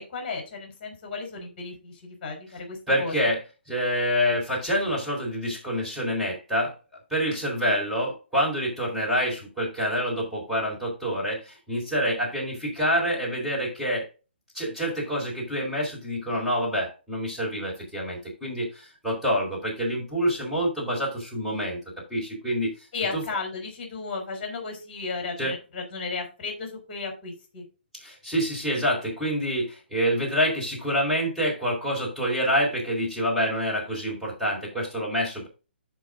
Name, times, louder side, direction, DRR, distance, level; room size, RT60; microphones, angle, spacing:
voice 1, 0.0-3.3 22.9-27.6, left 4 dB, 30° left, 2 dB, 3.6 m, -34 dB
voice 2, 2.9-3.4 3.7-6.7 7.1-14.1 14.5-21.8 22.1-22.7 23.1-23.2 25.4-25.5 27.9-35.5, equal, ahead, -6 dB, 4.2 m, -27 dB
11.5 x 4.0 x 3.7 m, 0.32 s
figure-of-eight pair, 145°, 6 cm